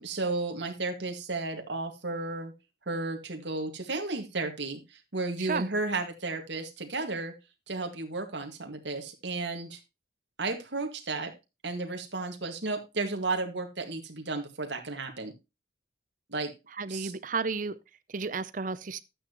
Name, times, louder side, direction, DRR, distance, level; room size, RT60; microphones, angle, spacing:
voice 1, 0.0-2.5 2.9-7.3 7.7-9.8 10.4-11.3 11.6-15.3 16.3-16.5 16.9-17.1, right 3 dB, 75° right, 2.0 m, -33 dB
voice 2, 5.4-5.7 16.8-17.7 18.1-19.0, right 4 dB, 45° right, 0.6 m, -32 dB
11.5 x 8.8 x 3.0 m
head